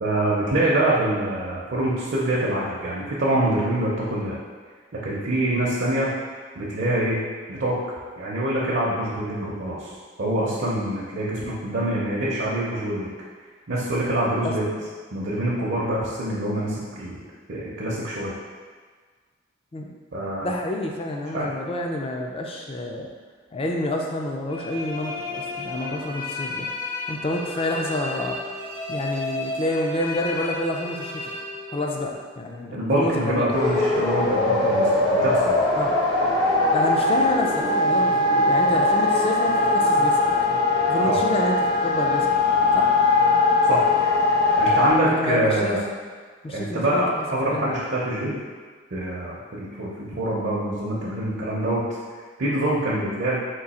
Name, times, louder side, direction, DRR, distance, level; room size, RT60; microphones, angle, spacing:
voice 1, 0.0-4.4 4.9-6.1 6.5-7.2 7.5-7.7 8.2-9.9 10.2-13.1 13.7-14.7 15.1-17.2 17.5-18.3 20.1-20.5 21.3-21.5 32.7-35.7 41.0-41.2 43.7-43.8 44.6-45.8 46.5-48.4 48.9-51.8 52.4-53.4, right 1 dB, 60° right, -6 dB, 0.6 m, -25 dB
voice 2, 20.4-23.1 23.5-26.7 27.1-28.4 28.9-31.4 31.7-33.6 35.8-36.0 36.7-40.3 40.9-42.3 42.7-42.9 44.7-45.8 46.4-47.3 47.5-47.8, left 1 dB, 30° left, 1 dB, 0.3 m, -28 dB
sound 1, 24.5-32.2, left 2 dB, 85° left, 1.4 m, -33 dB
sound 2, 33.5-44.9, left 2 dB, 60° left, 1.0 m, -20 dB
3.8 x 2.7 x 4.1 m, 1.5 s
head